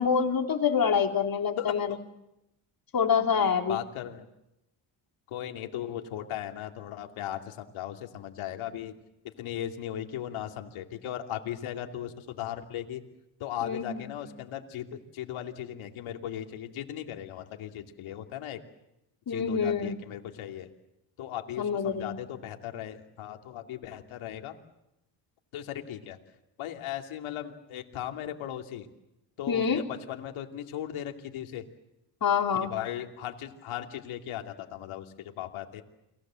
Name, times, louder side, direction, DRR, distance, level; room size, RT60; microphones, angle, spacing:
voice 1, 0.0-1.9 2.9-3.8 13.6-14.2 19.3-19.9 21.6-22.2 29.5-29.8 32.2-32.7, left 6 dB, 45° left, 3 dB, 3.9 m, -26 dB
voice 2, 1.6-2.0 3.7-4.3 5.3-8.9 9.2-13.0 13.4-18.6 19.3-20.7 21.2-24.6 25.5-26.2 26.6-28.9 29.4-31.6 32.6-35.8, left 11 dB, 90° left, 4 dB, 2.8 m, -37 dB
30.0 x 22.0 x 7.7 m, 0.88 s
cardioid pair, 95°, 47 cm